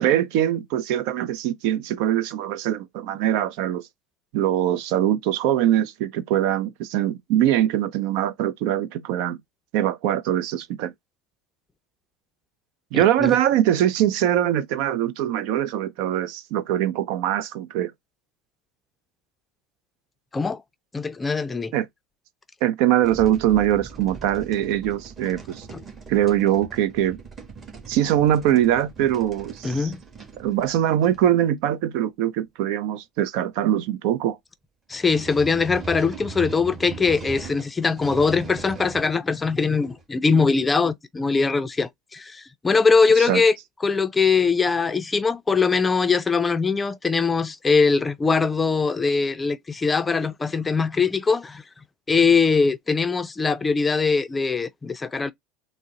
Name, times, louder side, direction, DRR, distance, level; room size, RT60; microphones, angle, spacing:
voice 1, 0.0-3.9 4.3-9.4 9.7-10.9 12.9-17.9 21.7-21.9 22.6-25.7 26.1-27.2 27.9-29.9 30.4-34.4 43.3-43.4, right 11 dB, 70° right, 0.5 m, -22 dB
voice 2, 12.9-13.4 20.3-20.6 20.9-21.7 25.7-25.8 29.6-30.0 34.9-43.6 43.8-51.6 52.1-55.3, left 4 dB, 20° left, 0.4 m, -21 dB
sound 1, 23.0-31.3 34.9-39.1 39.5-40.0, right 4 dB, 30° right, 1.6 m, -40 dB
3.9 x 2.1 x 3.6 m
supercardioid pair, 100°, 0 cm